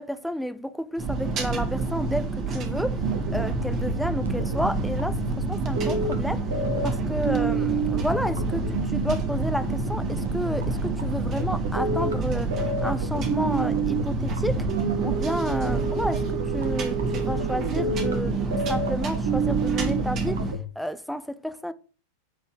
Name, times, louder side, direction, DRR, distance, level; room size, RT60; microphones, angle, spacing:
voice 1, 0.0-3.0 3.3-6.4 6.8-14.6 15.0-20.5 20.8-21.7, equal, ahead, 0.7 m, -31 dB
sound 1, 1.0-20.5, right 4 dB, 35° right, 2.2 m, -29 dB
sound 2, 3.0-20.6, right 3 dB, 65° right, 1.6 m, -29 dB
9.5 x 4.6 x 6.4 m
figure-of-eight pair, 90°, 0 cm